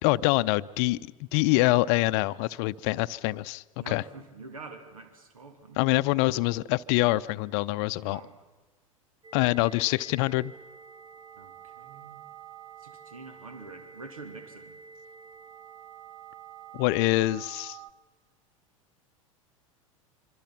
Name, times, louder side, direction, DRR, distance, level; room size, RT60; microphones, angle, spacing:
voice 1, 0.0-1.0 1.3-4.0 5.8-8.2 9.3-10.5 16.7-17.8, left 19 dB, 50° left, 15 dB, 0.7 m, -25 dB
voice 2, 3.8-6.1 8.0-8.4 11.4-12.2 12.8-14.8, right 3 dB, 80° right, 6 dB, 2.6 m, -46 dB
sound 1, 9.2-17.9, right 8 dB, 25° right, 1.3 m, -48 dB
25.5 x 25.0 x 5.9 m, 1.3 s
figure-of-eight pair, 85°, 18 cm